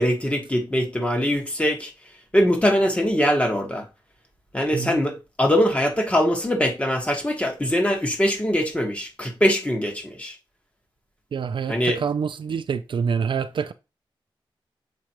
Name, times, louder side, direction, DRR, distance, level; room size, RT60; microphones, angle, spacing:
voice 1, 0.0-1.9 2.3-3.9 4.5-10.4 11.7-12.0, equal, 15° left, 1.5 m, -22 dB
voice 2, 11.3-13.7, right 6 dB, 65° right, 0.4 m, -26 dB
7.3 x 5.0 x 3.0 m
wide cardioid pair, 135°, 9 cm